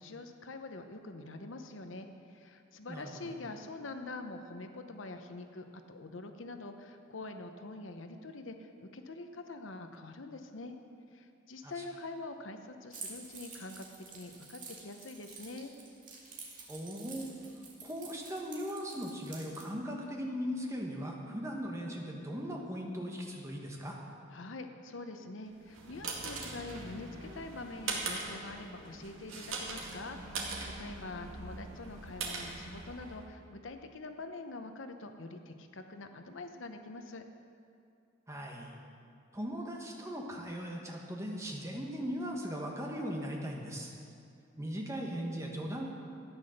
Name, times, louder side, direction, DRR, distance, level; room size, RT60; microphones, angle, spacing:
voice 1, 0.0-10.7 11.1-15.7 24.3-37.2, left 2 dB, 75° left, 7 dB, 0.8 m, -45 dB
voice 2, 2.9-3.3 11.6-11.8 16.7-17.3 17.8-24.0 38.3-38.8 39.3-43.9 44.6-46.0, equal, 15° right, 0 dB, 1.4 m, -38 dB
Keys jangling, 12.9-19.6, right 4 dB, 40° right, 2.2 m, -49 dB
sound 1, 25.5-33.3, right 3 dB, 90° right, 2.2 m, -41 dB
13.0 x 9.6 x 6.5 m, 2.5 s
head